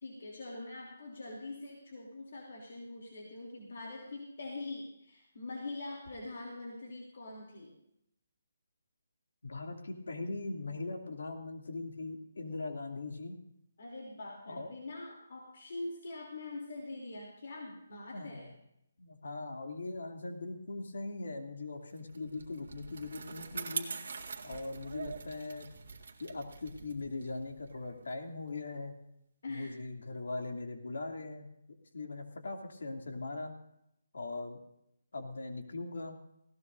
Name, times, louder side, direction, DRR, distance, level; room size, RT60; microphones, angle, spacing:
voice 1, 0.0-7.7 13.8-18.5 29.4-29.7, left 2 dB, 55° left, -2 dB, 3.2 m, -43 dB
voice 2, 9.4-13.4 14.5-14.7 18.1-18.5 19.0-23.9 24.4-25.7 26.2-28.9 29.5-31.5 31.9-33.6 34.1-34.6 35.1-36.2, left 3 dB, 80° left, 2 dB, 2.8 m, -40 dB
Bicycle, 22.0-28.7, right 5 dB, 60° right, 1.9 m, -44 dB
20.0 x 17.0 x 2.7 m, 0.78 s
hypercardioid pair, 175°, 0 cm